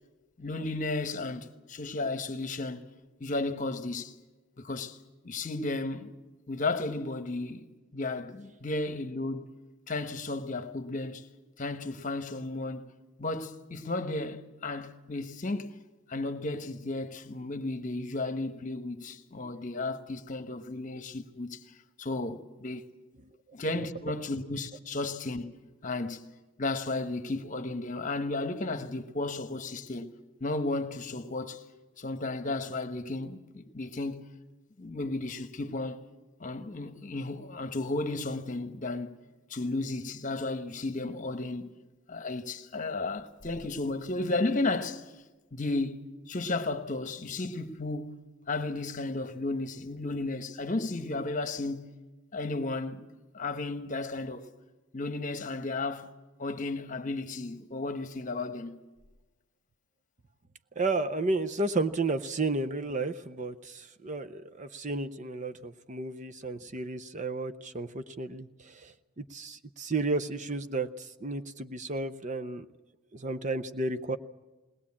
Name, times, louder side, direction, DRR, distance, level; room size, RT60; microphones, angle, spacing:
voice 1, 0.4-2.8 3.2-4.2 4.6-5.0 5.2-6.1 6.5-7.7 7.9-9.4 9.9-11.3 11.6-12.9 13.2-15.8 16.1-21.6 22.0-22.8 23.5-25.5 25.8-26.3 26.6-30.1 30.4-31.6 32.0-34.3 34.8-36.0 36.4-39.2 39.5-41.7 42.1-45.1 45.5-46.0 46.3-48.2 48.5-51.9 52.3-53.0 53.3-54.5 54.9-56.1 56.4-58.8, left 2 dB, 35° left, 1.1 m, -33 dB
voice 2, 60.8-72.7 73.1-74.2, right 2 dB, 35° right, 0.6 m, -32 dB
21.0 x 19.5 x 8.6 m
head